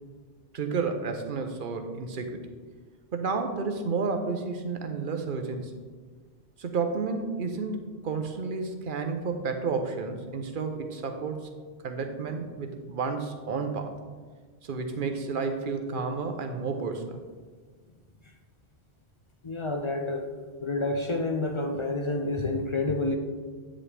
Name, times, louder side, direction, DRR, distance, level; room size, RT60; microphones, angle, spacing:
voice 1, 0.5-2.5 3.1-5.7 6.6-11.5 11.8-13.9 14.6-17.2, right 4 dB, 50° right, 6 dB, 0.9 m, -31 dB
voice 2, 19.4-20.3 20.6-23.2, left 2 dB, 45° left, 4 dB, 0.3 m, -29 dB
8.8 x 7.3 x 3.3 m, 1.5 s
omnidirectional pair, 1.3 m